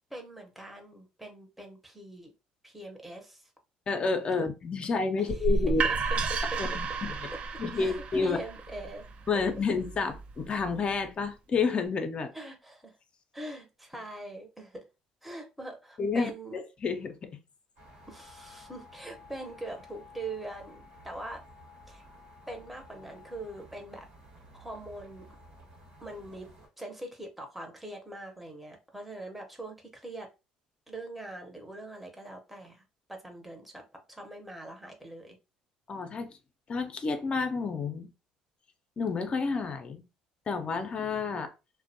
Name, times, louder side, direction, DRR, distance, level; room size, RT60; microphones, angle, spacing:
voice 1, 0.1-2.3 2.6-3.5 5.2-5.3 6.3-6.4 7.8-9.1 12.3-13.0 13.3-14.8 15.2-16.6 18.1-21.4 21.9-22.0 22.5-24.1 24.5-25.3 26.0-26.5 26.8-30.3 30.9-32.8 33.1-35.4, right 2 dB, 5° right, 0.7 m, -42 dB
voice 2, 3.9-5.8 6.6-7.3 7.6-8.4 9.3-12.3 16.0-17.3 35.9-36.4 36.7-38.1 39.0-40.0 40.5-41.5, left 4 dB, 40° left, 0.5 m, -30 dB
sound 1, 5.3-11.1, right 3 dB, 45° right, 0.4 m, -32 dB
sound 2, 17.8-26.7, left 1 dB, 80° right, 1.0 m, -53 dB
2.4 x 2.1 x 2.7 m
supercardioid pair, 75°, 3 cm